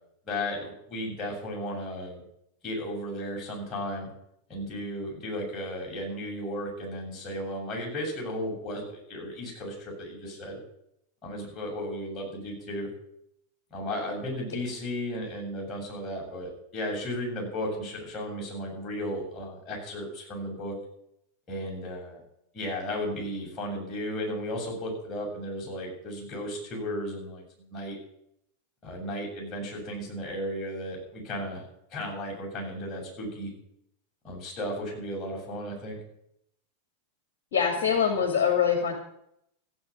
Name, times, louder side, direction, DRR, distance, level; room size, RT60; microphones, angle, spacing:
voice 1, 0.2-2.2 2.6-4.1 4.5-10.6 11.2-12.9 13.7-20.8 21.5-22.2 22.5-28.0 28.8-31.6 31.9-33.5 34.2-36.0, equal, 25° left, -2 dB, 7.7 m, -34 dB
voice 2, 37.5-38.9, left 7 dB, 55° left, 4 dB, 2.3 m, -24 dB
15.0 x 8.6 x 8.4 m, 0.76 s
figure-of-eight pair, 90°, 0 cm